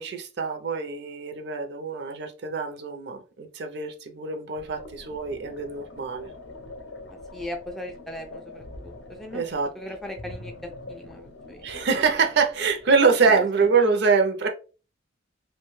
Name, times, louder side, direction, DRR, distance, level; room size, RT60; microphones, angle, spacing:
voice 1, 0.0-6.3 9.3-9.7 11.6-14.5, right 5 dB, 60° right, 0.5 m, -24 dB
sound 1, 4.6-13.1, left 2 dB, 65° left, 0.5 m, -44 dB
voice 2, 7.1-9.4 9.7-11.7 13.2-13.7, equal, ahead, 0.3 m, -39 dB
2.5 x 2.2 x 3.0 m
head